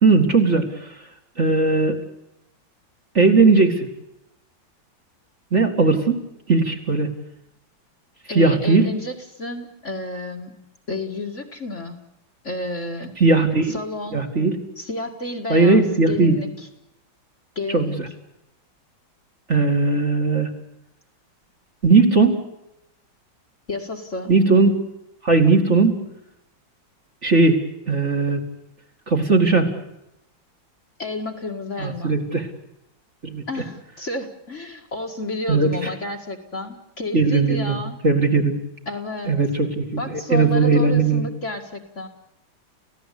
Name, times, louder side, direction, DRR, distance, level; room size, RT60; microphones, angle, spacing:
voice 1, 0.0-0.9 1.4-2.0 3.1-3.9 5.5-6.2 6.5-7.1 8.3-8.9 13.2-13.7 14.1-14.6 15.5-16.4 17.7-18.0 19.5-20.5 21.8-22.4 24.3-24.7 25.2-26.0 27.2-27.6 27.9-28.4 29.1-29.7 31.8-32.4 33.2-33.4 35.5-35.9 37.1-37.8 38.0-38.6 39.3-41.2, right 3 dB, 35° right, 2 dB, 2.7 m, -18 dB
voice 2, 8.3-10.6 10.9-12.0 12.4-13.2 13.7-14.2 14.8-16.5 17.6-18.0 23.7-24.3 31.0-32.2 33.5-38.0 38.9-39.3 40.0-42.1, left 2 dB, 40° left, 2 dB, 2.4 m, -31 dB
29.5 x 16.0 x 8.5 m, 0.87 s
omnidirectional pair, 2.2 m